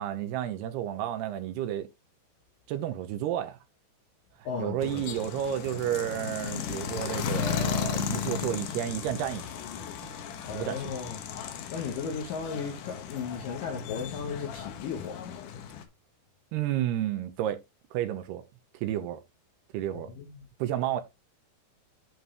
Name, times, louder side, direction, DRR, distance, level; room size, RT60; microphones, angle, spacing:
voice 1, 0.0-1.9 2.7-3.6 4.6-9.7 10.0-11.0 16.5-17.6 17.9-18.4 18.7-19.2 19.7-20.1 20.6-21.0, right 11 dB, 75° right, 2.6 m, -31 dB
voice 2, 4.5-5.1 10.4-11.2 11.7-15.4 19.9-20.5, left 6 dB, 65° left, 2.3 m, -36 dB
sound 1, 4.8-15.8, left 8 dB, 90° left, 1.8 m, -35 dB
11.0 x 4.7 x 3.5 m
omnidirectional pair, 5.5 m